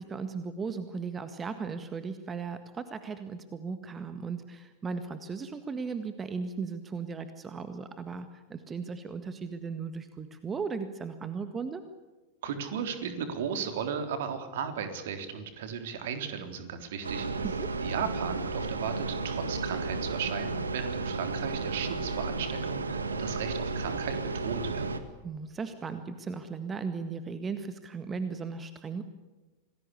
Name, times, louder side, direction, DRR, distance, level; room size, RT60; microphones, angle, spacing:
voice 1, 0.0-11.8 17.4-17.7 25.2-29.0, right 5 dB, 20° right, 10 dB, 1.7 m, -37 dB
voice 2, 12.4-17.5 17.8-24.8, right 7 dB, 55° right, 7 dB, 3.6 m, -35 dB
sound 1, 17.0-25.0, right 3 dB, 75° right, 2.0 m, -33 dB
28.0 x 20.0 x 8.5 m, 1.2 s
figure-of-eight pair, 90°, 0 cm